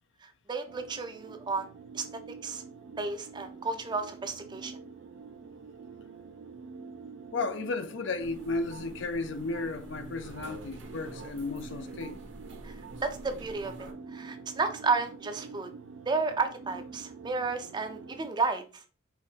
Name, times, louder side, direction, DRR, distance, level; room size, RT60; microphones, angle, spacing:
voice 1, 0.2-1.7 1.9-2.6 3.0-4.7 12.6-15.7 16.1-18.8, right 4 dB, 25° right, 0.4 m, -32 dB
sound 1, 0.7-18.3, right 4 dB, 90° right, 0.4 m, -47 dB
voice 2, 7.3-12.2, left 3 dB, 65° left, 0.5 m, -34 dB
sound 2, 8.2-13.9, right 2 dB, 70° right, 0.8 m, -47 dB
5.0 x 3.1 x 2.8 m
head